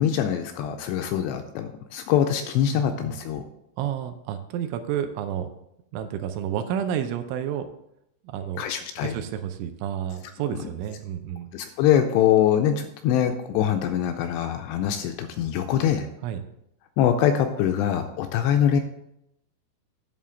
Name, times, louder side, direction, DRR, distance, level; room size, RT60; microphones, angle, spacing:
voice 1, 0.0-3.4 8.6-9.1 11.5-16.1 17.0-18.8, left 9 dB, 85° left, 6 dB, 2.4 m, -23 dB
voice 2, 3.8-5.5 5.9-7.7 8.2-8.7 9.0-11.5 16.2-16.4, right 9 dB, 85° right, 8 dB, 3.0 m, -30 dB
11.0 x 3.7 x 7.0 m, 0.80 s
omnidirectional pair, 5.4 m